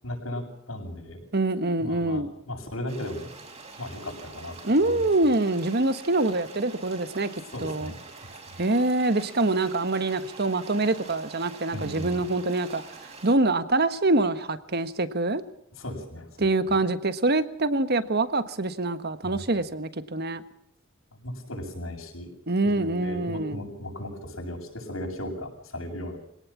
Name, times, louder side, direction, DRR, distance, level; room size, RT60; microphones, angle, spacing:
voice 1, 0.0-1.2 1.8-3.3 3.8-4.6 7.5-8.0 11.7-12.2 15.8-16.3 19.2-19.4 21.1-22.3 22.6-26.2, left 1 dB, 85° left, 7.8 m, -36 dB
voice 2, 1.3-2.3 4.6-7.3 7.6-7.9 8.6-15.4 16.4-20.4 22.5-23.6, right 2 dB, 50° right, 1.4 m, -25 dB
sound 1, 2.9-13.3, right 3 dB, 30° right, 4.9 m, -45 dB
24.5 x 18.0 x 7.4 m
head